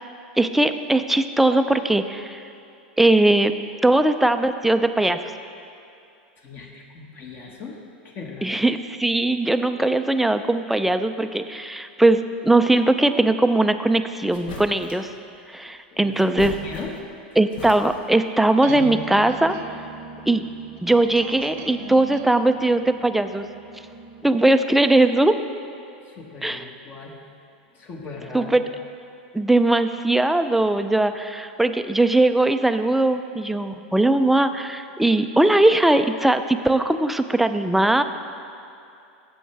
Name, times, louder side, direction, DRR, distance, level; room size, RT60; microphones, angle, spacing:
voice 1, 0.4-2.4 3.0-3.5 3.8-5.2 8.4-15.1 15.5-16.6 17.4-19.6 20.3-20.4 20.8-23.5 24.2-25.4 26.4-26.6 28.3-28.6 29.3-38.0, right 2 dB, 5° right, 9 dB, 0.4 m, -20 dB
voice 2, 6.4-7.8 8.0-8.6 15.9-17.0 26.1-27.2 27.7-28.6, left 4 dB, 35° left, 0 dB, 1.5 m, -39 dB
sound 1, 13.9-14.0 14.3-15.1 16.1-17.2 17.5-18.2, left 4 dB, 70° left, 1.5 m, -38 dB
sound 2, 18.5-24.5, right 6 dB, 55° right, 0.8 m, -39 dB
13.5 x 8.5 x 3.4 m, 2.6 s
hypercardioid pair, 105°, 5 cm